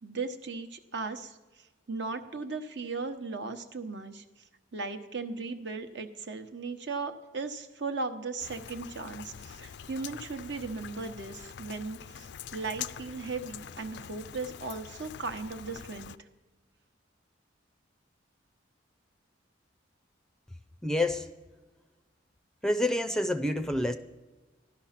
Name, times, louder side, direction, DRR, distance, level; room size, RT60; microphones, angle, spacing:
voice 1, 0.0-16.3, right 4 dB, 60° right, 7 dB, 1.0 m, -37 dB
Rain, 8.4-16.2, left 8 dB, 60° left, 0.4 m, -44 dB
voice 2, 20.8-21.3 22.6-23.9, left 1 dB, 5° left, 9 dB, 0.5 m, -28 dB
15.5 x 11.5 x 5.8 m, 1.2 s
head